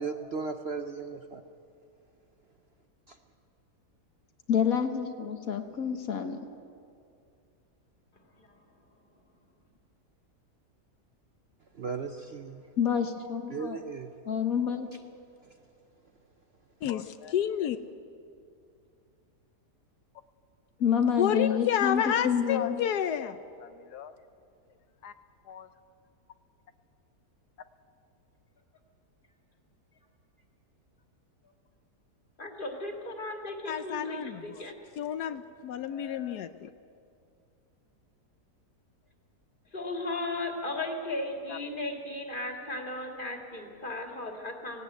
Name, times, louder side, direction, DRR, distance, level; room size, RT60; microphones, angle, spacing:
voice 1, 0.0-1.4 11.7-12.6 13.5-14.1, right 5 dB, 50° right, 6 dB, 0.8 m, -36 dB
voice 2, 4.5-6.4 12.8-13.8 14.3-14.9 20.8-22.8, left 7 dB, 60° left, 7 dB, 1.5 m, -28 dB
voice 3, 16.8-17.8 21.2-24.1 25.0-25.1 25.5-25.7 33.7-34.7 35.0-36.7 41.5-41.6, left 9 dB, 75° left, 11 dB, 1.2 m, -30 dB
voice 4, 32.4-34.8 39.7-44.8, left 2 dB, 30° left, 3 dB, 2.4 m, -36 dB
18.0 x 17.0 x 9.2 m, 2.4 s
omnidirectional pair, 1.7 m